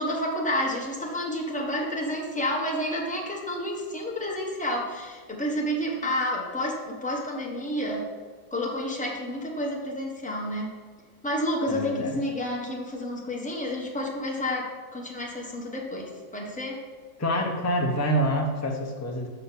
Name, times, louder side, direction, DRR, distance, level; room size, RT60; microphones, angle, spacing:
voice 1, 0.0-8.1 8.5-10.7 11.2-16.8, left 1 dB, 5° left, -2 dB, 0.7 m, -30 dB
voice 2, 11.7-12.2 17.2-19.3, equal, 25° left, 1 dB, 0.3 m, -26 dB
5.7 x 5.4 x 5.7 m, 1.4 s
omnidirectional pair, 1.8 m